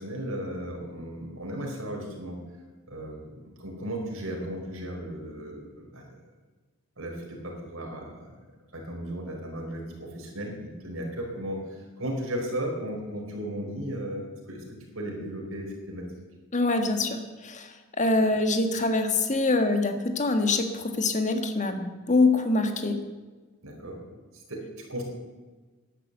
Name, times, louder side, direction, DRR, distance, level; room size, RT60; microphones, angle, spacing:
voice 1, 0.0-2.4 2.9-6.2 7.0-8.3 8.7-16.1 23.6-24.0 24.5-25.0, right 1 dB, 65° right, 0 dB, 4.4 m, -35 dB
voice 2, 16.5-17.2 17.4-17.7 18.0-23.0, left 2 dB, 35° left, 6 dB, 1.5 m, -24 dB
12.0 x 11.0 x 8.1 m, 1.3 s
head